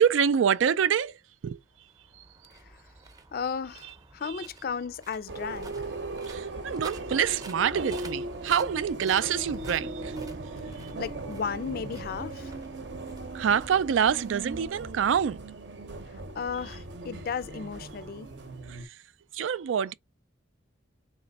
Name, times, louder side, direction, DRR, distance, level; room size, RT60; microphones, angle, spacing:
voice 1, 0.0-1.6 2.1-2.3 4.2-4.5 6.1-10.3 10.8-10.9 13.3-15.4 18.7-19.0 19.3-19.9, right 8 dB, 85° right, 0.4 m, -26 dB
sound 1, 1.5-14.9, right 3 dB, 20° right, 0.6 m, -52 dB
voice 2, 3.3-5.9 10.7-12.6 16.1-18.3, left 6 dB, 50° left, 0.4 m, -35 dB
sound 2, 5.3-18.8, right 2 dB, 65° right, 0.8 m, -38 dB
3.2 x 3.0 x 4.1 m
head